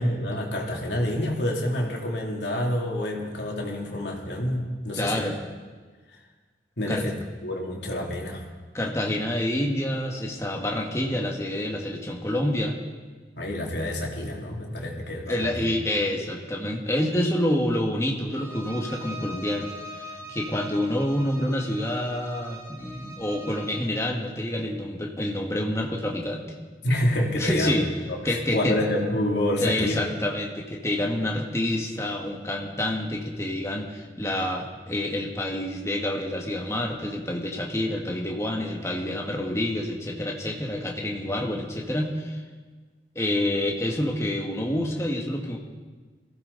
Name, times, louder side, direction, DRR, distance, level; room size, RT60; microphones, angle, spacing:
voice 1, 0.0-5.3 6.8-8.4 13.4-15.7 26.8-27.7 28.1-30.1 41.2-41.4, left 1 dB, 75° left, -1 dB, 3.0 m, -28 dB
voice 2, 5.0-5.4 6.9-7.0 8.7-12.8 15.3-26.4 27.3-27.9 28.2-28.8 29.6-42.4 43.2-45.6, left 1 dB, 15° left, 0 dB, 1.8 m, -28 dB
Bowed string instrument, 18.3-23.9, equal, 15° right, 2.0 m, -42 dB
22.5 x 15.5 x 4.1 m, 1.4 s
head